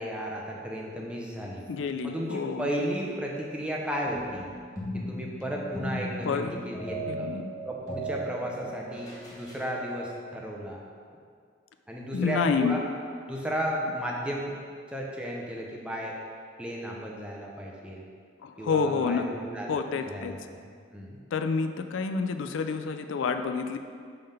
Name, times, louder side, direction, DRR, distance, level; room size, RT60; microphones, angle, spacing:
voice 1, 0.0-1.7 2.0-4.5 4.9-7.3 7.6-10.8 11.9-12.8 13.3-14.5 14.9-16.2 16.6-18.1 18.6-20.4 20.9-21.2, equal, 5° right, -2 dB, 0.6 m, -34 dB
voice 2, 1.7-2.7 6.3-6.6 7.1-7.5 12.1-12.8 18.4-19.3 19.7-20.3 21.3-23.8, left 5 dB, 80° left, 7 dB, 0.4 m, -28 dB
sound 1, 4.0-9.7, right 1 dB, 20° left, 1.1 m, -37 dB
5.3 x 3.7 x 5.5 m, 2.1 s
head